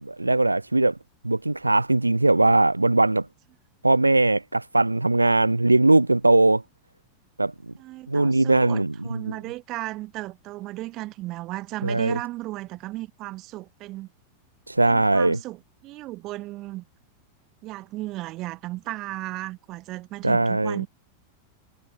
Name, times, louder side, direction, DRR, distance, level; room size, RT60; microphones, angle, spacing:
voice 1, 0.1-1.0 1.2-3.3 3.8-6.6 7.4-7.7 8.1-9.2 11.8-12.2 14.7-15.4 20.2-20.8, right 2 dB, 85° right, 0.4 m, -20 dB
voice 2, 7.8-14.1 14.9-16.8 17.6-20.9, right 18 dB, 40° right, 0.9 m, -35 dB
figure-of-eight pair, 90°, 0 cm